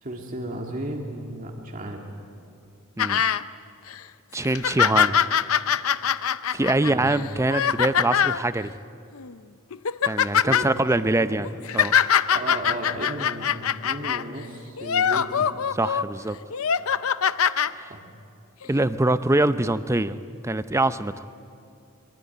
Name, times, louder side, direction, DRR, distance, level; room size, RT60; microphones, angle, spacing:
voice 1, 0.0-2.1 6.8-7.1 10.4-10.7 11.2-11.5 12.3-15.5 17.9-18.0, right 1 dB, 40° right, 1 dB, 2.1 m, -34 dB
sound 1, 3.0-3.4 3.9-4.0 4.4-8.4 9.2-9.3 9.7-10.7 11.4-14.2 14.8-16.0 16.5-17.7 18.6-18.7, left 8 dB, 65° left, 0.6 m, -23 dB
voice 2, 4.3-5.2 6.5-8.7 10.0-11.9 15.7-16.4 17.8-17.9 18.7-20.2 20.4-21.1, right 2 dB, 15° right, 12 dB, 0.6 m, -24 dB
23.5 x 23.5 x 9.6 m, 2.5 s
head